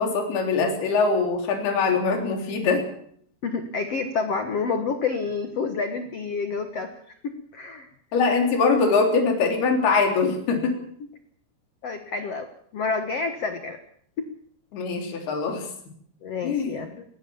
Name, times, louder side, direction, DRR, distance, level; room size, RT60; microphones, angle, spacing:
voice 1, 0.0-2.9 8.1-10.8 14.7-15.7 16.4-16.8, left 4 dB, 60° left, 3 dB, 5.3 m, -22 dB
voice 2, 3.4-6.9 7.2-7.9 11.8-12.5 12.7-13.8 14.2-14.3 16.2-17.0, left 4 dB, 75° left, 7 dB, 1.4 m, -28 dB
21.5 x 17.0 x 7.2 m, 0.64 s
omnidirectional pair, 5.2 m